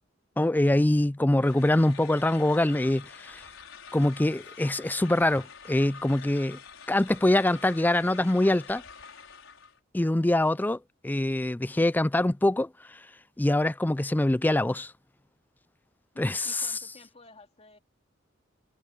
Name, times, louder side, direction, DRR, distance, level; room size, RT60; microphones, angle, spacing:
voice 1, 0.4-3.4 3.9-6.6 6.9-8.8 9.9-10.8 11.0-13.0 13.4-14.9 16.2-16.7, left 1 dB, 10° left, 0.4 m, -24 dB
sound 1, 1.4-9.8, left 6 dB, 85° left, 5.3 m, -47 dB
voice 2, 16.1-17.8, left 2 dB, 30° left, 2.6 m, -52 dB
head